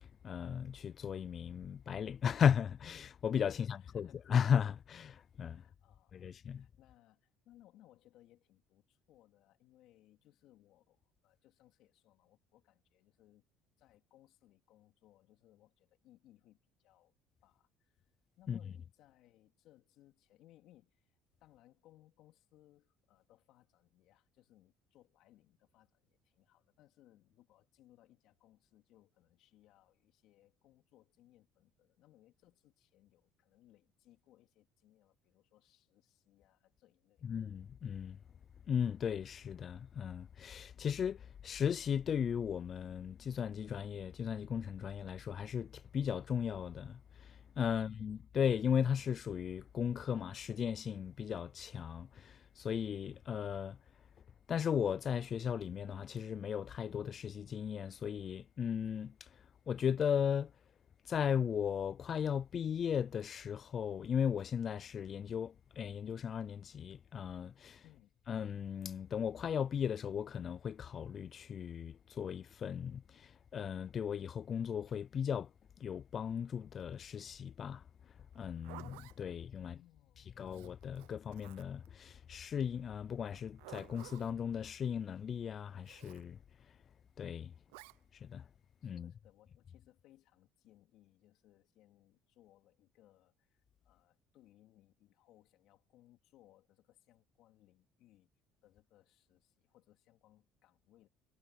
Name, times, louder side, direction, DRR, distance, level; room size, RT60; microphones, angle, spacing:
voice 1, 0.0-5.6 6.1-6.7 18.5-18.6 37.2-38.2 38.7-53.8 54.5-60.5 61.1-67.8 68.3-75.5 75.8-77.8 78.3-79.8 80.4-86.4 87.2-87.5 88.1-88.5 88.8-89.1, left 8 dB, 45° left, 0.5 m, -36 dB
voice 2, 3.5-4.3 5.5-13.5 13.8-17.1 17.4-37.4 47.7-47.9 67.8-68.2 79.6-80.6 88.8-98.3 98.6-101.1, left 14 dB, 70° left, 3.4 m, -66 dB
Zipper (clothing), 78.3-79.2 80.5-81.9 83.3-84.4 85.8-86.2 87.7-88.0, right 22 dB, 85° right, 0.8 m, -54 dB
supercardioid pair, 75°, 0 cm